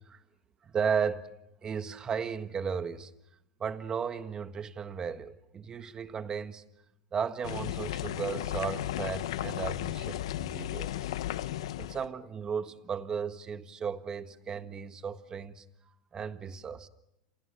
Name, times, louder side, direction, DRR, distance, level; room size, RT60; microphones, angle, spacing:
voice 1, 0.6-1.3 1.6-3.1 3.6-6.6 7.1-11.1 11.8-15.6 16.1-16.9, right 6 dB, 25° right, 1.6 m, -35 dB
sound 1, 7.4-12.1, left 13 dB, 90° left, 0.9 m, -35 dB
29.0 x 27.5 x 6.8 m
supercardioid pair, 125°, 3 cm